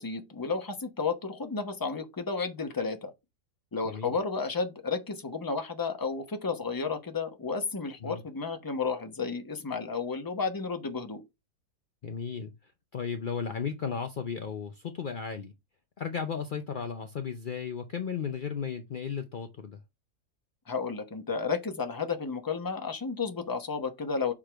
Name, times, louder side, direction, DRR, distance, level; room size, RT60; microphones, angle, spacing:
voice 1, 0.0-3.1 3.7-11.2 20.7-24.3, left 4 dB, 20° left, 0.7 m, -32 dB
voice 2, 12.0-15.5 16.0-19.8, left 6 dB, 65° left, 0.5 m, -35 dB
6.5 x 3.7 x 4.5 m
omnidirectional pair, 1.7 m